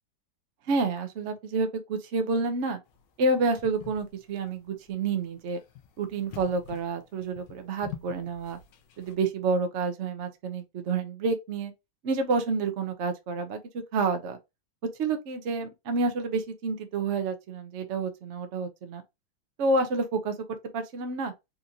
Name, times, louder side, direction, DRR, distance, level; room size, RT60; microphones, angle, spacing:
voice 1, 0.7-2.8 3.2-5.6 6.0-8.6 9.0-11.7 12.0-14.4 15.0-19.0 19.6-20.3 20.7-21.3, right 3 dB, 70° right, 0.6 m, -29 dB
sound 1, 2.9-9.1, left 10 dB, 75° left, 1.3 m, -47 dB
4.3 x 2.5 x 2.7 m
omnidirectional pair, 2.1 m